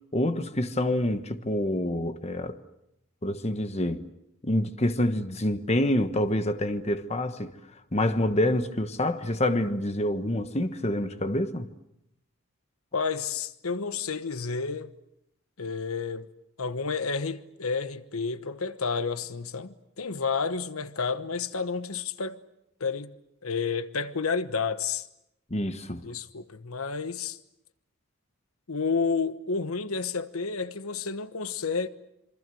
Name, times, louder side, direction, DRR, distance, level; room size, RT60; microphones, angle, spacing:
voice 1, 0.1-2.6 3.2-4.0 4.4-7.5 7.9-11.7 25.5-26.0, left 1 dB, 30° left, 1.3 m, -27 dB
voice 2, 12.9-14.9 15.6-16.3 16.6-22.4 22.8-23.1 23.4-25.1 26.0-27.4 28.7-31.9, left 5 dB, 85° left, 1.2 m, -30 dB
27.0 x 25.0 x 7.7 m
head